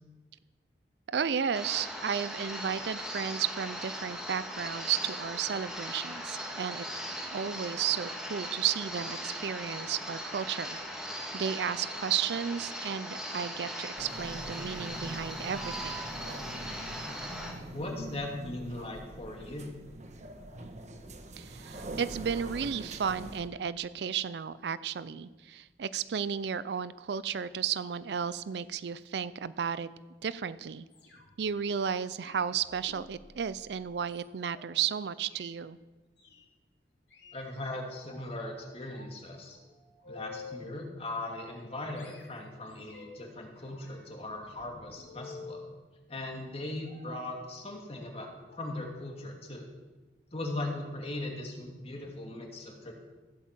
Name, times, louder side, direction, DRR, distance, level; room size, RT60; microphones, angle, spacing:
voice 1, 1.1-6.9 7.3-16.1 21.4-29.9 30.2-30.8 31.4-35.8, right 7 dB, 70° right, 16 dB, 0.4 m, -33 dB
sound 1, 1.5-17.5, equal, 5° right, 2.3 m, -39 dB
sound 2, 14.0-23.5, right 2 dB, 40° right, 1.2 m, -43 dB
voice 2, 17.7-19.7 37.3-39.6 40.1-45.7 46.1-48.3 48.6-49.7 50.3-52.9, left 1 dB, 35° left, 1 dB, 2.5 m, -39 dB
sound 3, 30.9-31.5 32.2-34.7 35.1-35.5 36.2-36.5 37.1-38.2 38.6-39.1 39.4-40.7 41.1-41.7 42.0-43.3 43.6-45.7 46.8-47.3 48.0-48.1 48.4-48.6 49.0-49.2 49.5-49.6, left 4 dB, 80° left, 3.1 m, -51 dB
15.5 x 8.3 x 7.4 m, 1.2 s
head